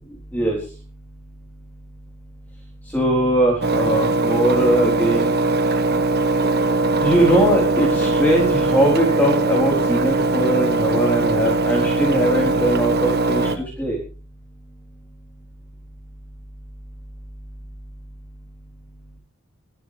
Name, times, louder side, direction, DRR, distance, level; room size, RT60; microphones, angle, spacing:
voice 1, 2.9-5.3 7.0-14.0, right 1 dB, 10° left, -2 dB, 4.1 m, -20 dB
Engine, 3.6-13.6, right 2 dB, 50° right, 1.4 m, -20 dB
25.5 x 10.5 x 3.4 m, 0.35 s
head